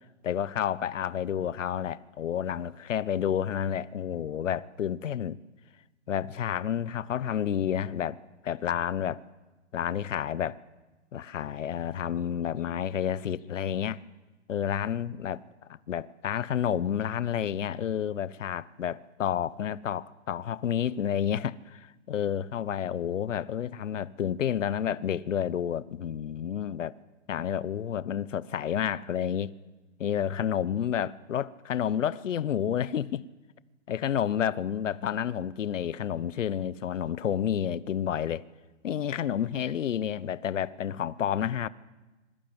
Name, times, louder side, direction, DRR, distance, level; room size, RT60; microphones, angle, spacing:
voice 1, 0.2-5.4 6.1-9.2 9.7-10.6 11.1-14.0 14.5-15.4 15.9-26.9 27.3-29.5 30.0-33.2 33.9-38.4 38.8-41.7, left 9 dB, 70° left, 1.1 m, -30 dB
25.5 x 21.5 x 9.0 m
hypercardioid pair, 160°, 39 cm